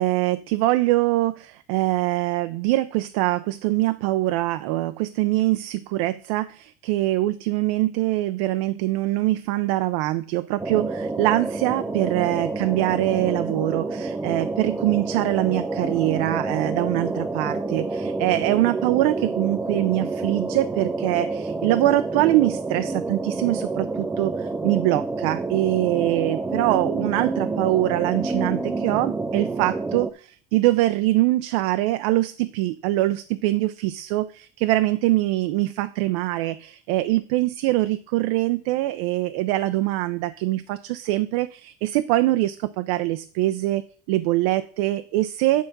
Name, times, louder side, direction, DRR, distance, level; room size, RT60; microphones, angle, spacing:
voice 1, 0.0-43.8 44.1-45.6, right 16 dB, 90° right, 11 dB, 0.5 m, -23 dB
sound 1, 10.6-30.1, right 3 dB, 10° right, 0.4 m, -28 dB
10.0 x 3.9 x 5.9 m, 0.44 s
cardioid pair, 165°, 17 cm